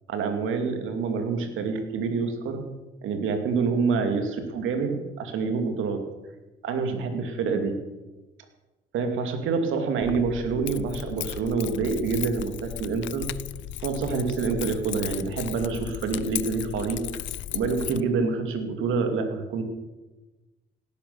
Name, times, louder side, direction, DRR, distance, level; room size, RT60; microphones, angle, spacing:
voice 1, 0.1-2.6 3.0-6.0 6.6-7.7 8.9-13.3 13.8-17.0 17.5-19.6, right 5 dB, 85° right, 5 dB, 2.6 m, -27 dB
Keys jangling, 10.0-18.0, left 13 dB, 70° left, 0.6 m, -35 dB
18.0 x 10.0 x 7.0 m, 1.1 s
cardioid pair, 90°, 20 cm